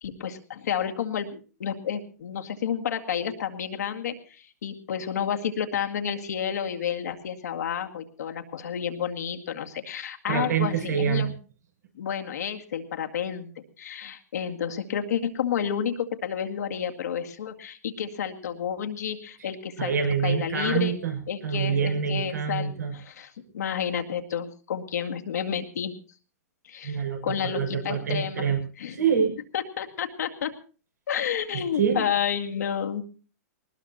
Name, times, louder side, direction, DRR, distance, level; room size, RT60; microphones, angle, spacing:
voice 1, 0.0-11.3 12.0-19.9 20.2-21.0 21.3-25.9 26.7-27.0 27.2-29.0 29.5-30.5 31.1-33.0, left 8 dB, 80° left, 3 dB, 2.1 m, -30 dB
voice 2, 10.3-11.3 19.8-22.9 26.8-28.6 28.9-29.4 31.5-32.0, right 7 dB, 90° right, 3 dB, 6.0 m, -26 dB
19.5 x 19.5 x 2.9 m, 0.37 s
hypercardioid pair, 130°, 9 cm